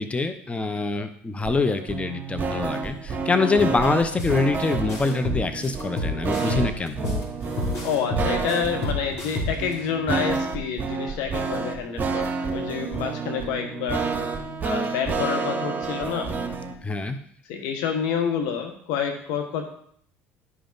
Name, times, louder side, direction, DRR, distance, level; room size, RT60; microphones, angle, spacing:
voice 1, 0.0-7.0 16.8-17.2, left 3 dB, 20° left, 9 dB, 0.8 m, -25 dB
sound 1, 1.4-16.8, right 4 dB, 30° right, 1.7 m, -29 dB
voice 2, 3.4-3.8 7.8-14.1 14.6-16.3 17.5-19.7, left 7 dB, 70° left, 5 dB, 1.1 m, -28 dB
sound 2, 4.2-4.4 4.7-7.2 7.6-9.7, left 2 dB, 55° left, 3.2 m, -28 dB
11.0 x 5.1 x 4.0 m, 0.63 s
hypercardioid pair, 70°, 6 cm